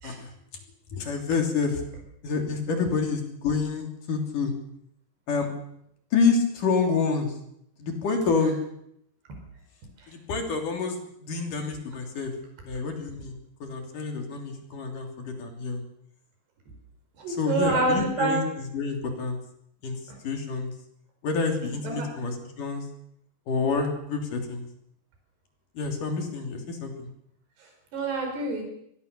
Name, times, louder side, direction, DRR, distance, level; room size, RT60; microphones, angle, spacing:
voice 1, 0.9-1.8 2.2-4.5 5.3-5.5 6.1-7.3 7.8-8.6 10.1-12.3 12.7-15.8 17.3-19.4 19.8-20.0 20.2-20.7 21.2-22.8 23.5-24.7 25.7-27.1, left 4 dB, 50° left, 3 dB, 4.5 m, -28 dB
voice 2, 17.2-18.4 21.8-22.1 27.6-28.6, right 3 dB, 75° right, 2 dB, 6.6 m, -27 dB
26.0 x 19.5 x 6.9 m, 0.73 s
omnidirectional pair, 4.8 m